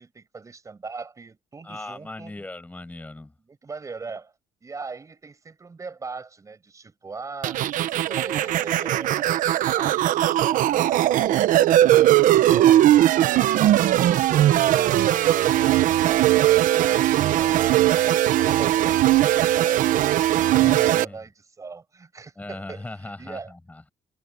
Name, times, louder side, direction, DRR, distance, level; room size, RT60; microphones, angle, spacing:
voice 1, 0.0-2.3 3.5-4.3 4.6-7.6 8.1-11.5 12.0-13.9 14.4-20.1 20.5-23.5, right 4 dB, 25° right, 7.7 m, -40 dB
voice 2, 1.6-3.3 20.6-21.2 22.4-23.9, left 2 dB, 10° left, 7.0 m, -38 dB
sound 1, 7.4-21.0, right 13 dB, 70° right, 1.0 m, -19 dB
cardioid pair, 140°, 14 cm